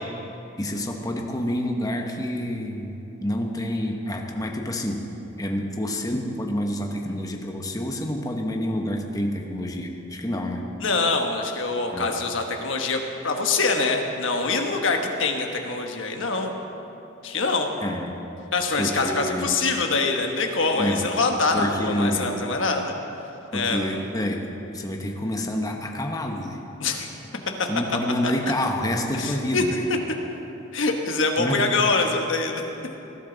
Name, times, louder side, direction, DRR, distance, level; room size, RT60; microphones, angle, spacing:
voice 1, 0.6-5.0 5.4-10.6 11.9-12.1 17.8-18.2 18.8-19.5 20.8-21.1 21.5-22.3 23.5-24.4 24.7-26.6 27.7-29.8 31.4-31.6, left 1 dB, 20° left, 2 dB, 1.0 m, -28 dB
voice 2, 10.8-16.5 17.2-17.7 18.5-22.9 23.5-24.0 26.8-27.1 28.2-28.3 29.1-29.6 30.7-32.6, left 3 dB, 65° left, 3 dB, 1.3 m, -24 dB
19.5 x 12.0 x 4.0 m, 2.9 s
head